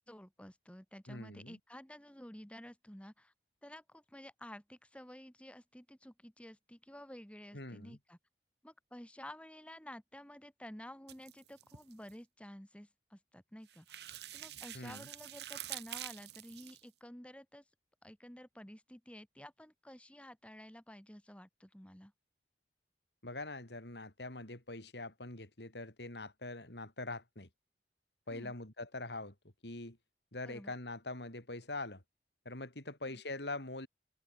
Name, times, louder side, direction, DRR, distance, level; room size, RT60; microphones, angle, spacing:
voice 1, 0.0-3.3 3.6-8.2 8.6-14.0 14.3-17.6 18.0-22.1 28.3-28.5 30.4-30.7 33.0-33.2, equal, 5° left, 1.9 m, -52 dB
voice 2, 1.1-1.6 7.5-8.0 14.7-15.1 23.2-27.5 28.3-29.3 29.6-30.0 30.3-32.0 32.4-33.9, left 2 dB, 75° left, 4.4 m, -43 dB
sound 1, 11.1-12.1 13.7-16.8, right 12 dB, 75° right, 1.7 m, -46 dB
head